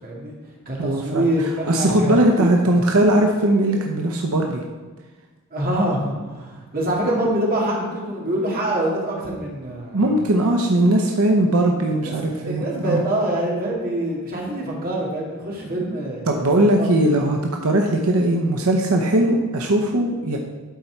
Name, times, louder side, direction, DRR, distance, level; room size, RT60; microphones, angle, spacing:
voice 1, 0.0-0.4 0.7-2.8 5.5-10.0 12.0-12.1 12.4-16.9, right 1 dB, 45° right, -3 dB, 2.1 m, -25 dB
voice 2, 0.8-1.3 1.7-4.6 9.9-13.0 16.3-20.4, right 1 dB, 85° right, 1 dB, 0.8 m, -19 dB
12.0 x 4.3 x 4.5 m, 1.3 s
head